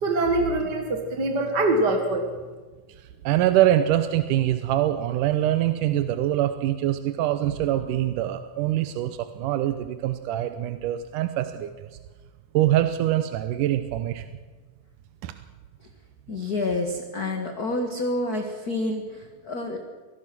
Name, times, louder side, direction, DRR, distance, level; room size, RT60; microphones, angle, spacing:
voice 1, 0.0-2.3, right 2 dB, 40° right, 4 dB, 2.0 m, -23 dB
voice 2, 3.2-11.9 12.5-14.3 15.2-15.3, right 13 dB, 90° right, 9 dB, 2.4 m, -24 dB
voice 3, 16.3-19.8, left 2 dB, 35° left, 3 dB, 1.9 m, -28 dB
25.5 x 19.0 x 6.1 m, 1.4 s
omnidirectional pair, 3.6 m